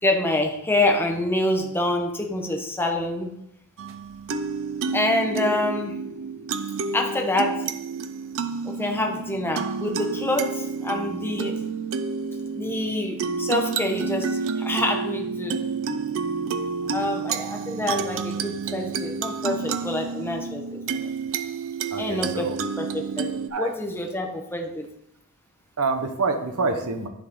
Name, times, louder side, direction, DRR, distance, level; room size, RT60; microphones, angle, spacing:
voice 1, 0.0-3.3 4.9-6.0 6.9-7.6 8.6-11.5 12.6-15.6 16.9-21.1 22.0-24.8, left 1 dB, 10° left, 2 dB, 0.9 m, -26 dB
sound 1, 3.8-23.5, right 5 dB, 65° right, 0.5 m, -30 dB
voice 2, 21.9-22.6 23.5-23.7 25.8-27.1, right 3 dB, 85° right, 7 dB, 0.9 m, -26 dB
10.5 x 4.2 x 3.7 m, 0.78 s
head